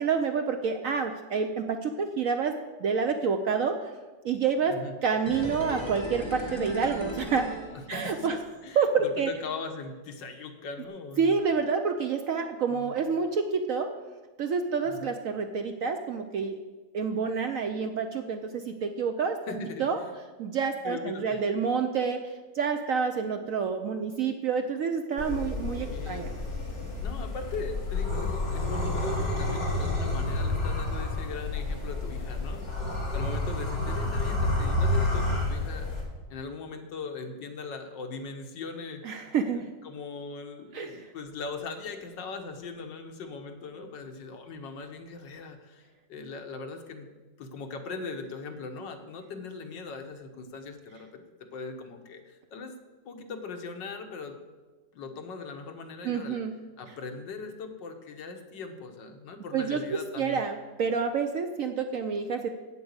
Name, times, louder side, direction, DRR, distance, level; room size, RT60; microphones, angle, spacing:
voice 1, 0.0-3.9 4.2-4.8 5.0-7.6 7.9-8.4 8.7-9.3 11.2-13.9 14.4-16.6 16.9-20.0 20.4-26.3 39.0-39.7 40.7-41.1 56.0-56.6 56.9-57.0 59.5-62.5, right 5 dB, 65° right, 6 dB, 0.8 m, -28 dB
sound 1, 5.3-8.4 8.7-8.8, equal, 15° left, 1.2 m, -37 dB
voice 2, 7.9-8.3 8.6-11.4 12.7-12.9 14.9-15.1 19.5-20.1 20.8-21.4 25.9-26.2 27.0-35.9 36.3-39.0 39.5-47.1 47.4-51.2 51.5-52.7 53.1-54.4 54.9-56.4 56.8-60.4, left 4 dB, 75° left, 5 dB, 1.8 m, -40 dB
sound 2, 25.2-36.0, left 2 dB, 50° left, 3.2 m, -29 dB
8.1 x 8.0 x 8.0 m, 1.3 s
omnidirectional pair, 2.0 m